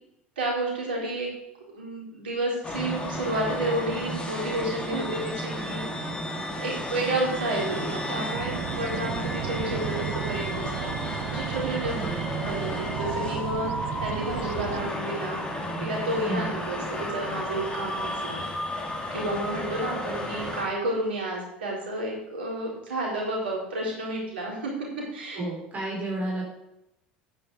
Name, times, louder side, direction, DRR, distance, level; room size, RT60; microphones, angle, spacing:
voice 1, 0.4-1.3 1.7-5.9 6.5-12.1 12.4-15.5 15.8-18.5 19.1-24.7 25.1-25.5, right 1 dB, 75° right, -3 dB, 4.0 m, -31 dB
sound 1, 2.6-20.6, left 1 dB, 15° left, 2.5 m, -33 dB
sound 2, 8.3-14.9, right 13 dB, 55° right, 0.6 m, -34 dB
voice 2, 11.9-12.4 16.2-16.5 25.4-26.4, right 2 dB, 30° right, -3 dB, 4.5 m, -32 dB
10.0 x 9.3 x 4.8 m, 0.87 s
figure-of-eight pair, 75°, 6 cm